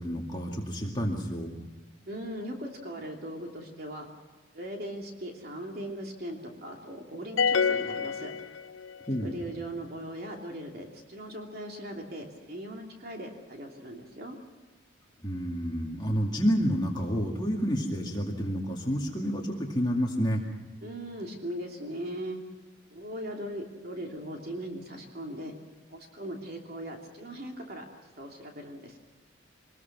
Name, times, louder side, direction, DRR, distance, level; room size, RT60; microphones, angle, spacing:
voice 1, 0.0-1.5 9.1-9.4 15.2-20.4, equal, 20° left, 0 dB, 2.2 m, -29 dB
voice 2, 2.1-4.1 4.5-8.3 9.2-14.4 20.8-22.4 22.9-25.5 25.9-27.8 28.2-29.0, right 1 dB, 50° right, 1 dB, 2.9 m, -39 dB
sound 1, 7.4-9.1, left 6 dB, 75° left, 0.6 m, -27 dB
25.0 x 20.0 x 6.0 m, 1.3 s
head